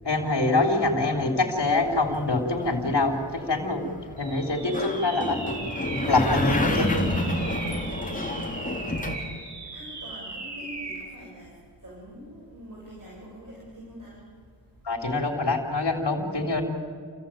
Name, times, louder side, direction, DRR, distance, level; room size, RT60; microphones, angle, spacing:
voice 1, 0.0-3.8 4.2-5.4 5.9-6.9 14.8-16.6, left 2 dB, 65° left, 3 dB, 3.6 m, -25 dB
voice 2, 1.0-1.7 4.5-5.3 8.1-9.2 9.7-11.5 11.8-14.2 16.6-16.7, equal, 45° right, -5 dB, 7.4 m, -43 dB
sound 1, 1.7-9.2, left 1 dB, 20° left, 3.6 m, -29 dB
sound 2, 4.2-11.1, right 3 dB, 75° right, 6.6 m, -38 dB
28.0 x 15.5 x 9.1 m, 2.1 s
wide cardioid pair, 70°, 43 cm